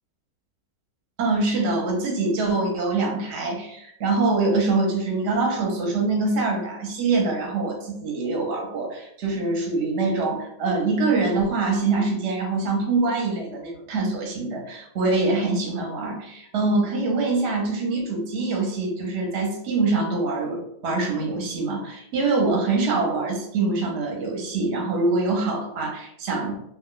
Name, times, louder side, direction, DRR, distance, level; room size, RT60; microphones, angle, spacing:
voice 1, 1.2-26.5, right 3 dB, 55° right, 0 dB, 0.9 m, -24 dB
2.6 x 2.2 x 3.7 m, 0.75 s
omnidirectional pair, 1.6 m